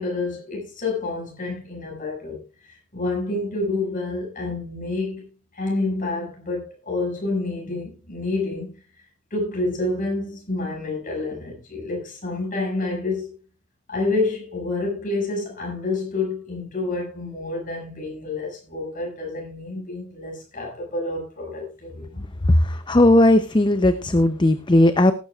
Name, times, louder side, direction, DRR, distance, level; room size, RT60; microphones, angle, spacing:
voice 1, 0.0-5.2 5.5-8.7 9.3-13.3 13.9-22.3, left 2 dB, 35° left, 6.3 m, -28 dB
voice 2, 22.5-25.1, left 1 dB, 20° left, 0.6 m, -17 dB
19.5 x 11.5 x 2.4 m
head